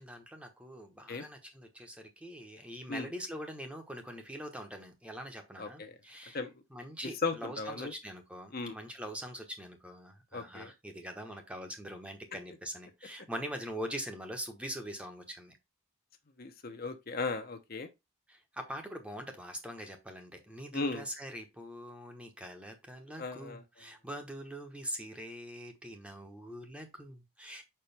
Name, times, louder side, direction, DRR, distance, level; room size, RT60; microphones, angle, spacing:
voice 1, 0.0-6.4 6.7-15.6 18.3-27.6, equal, 5° right, 1.0 m, -43 dB
voice 2, 5.6-6.0 6.3-6.5 7.2-7.9 8.5-8.8 10.3-10.7 16.4-17.9 20.7-21.1 23.2-23.6, left 3 dB, 45° left, 0.8 m, -36 dB
6.2 x 4.5 x 3.4 m
head